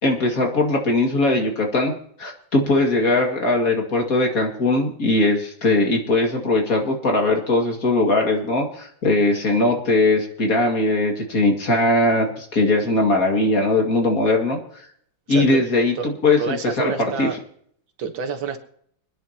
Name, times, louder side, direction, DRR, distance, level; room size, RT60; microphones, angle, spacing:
voice 1, 0.0-1.9 2.2-14.6 15.3-16.9 17.2-17.3, left 2 dB, 45° left, 1 dB, 2.5 m, -20 dB
voice 2, 15.3-15.6 16.0-16.1 16.4-17.4 18.0-18.6, right 6 dB, 80° right, 7 dB, 2.0 m, -28 dB
26.0 x 10.0 x 2.9 m, 0.66 s
omnidirectional pair, 2.1 m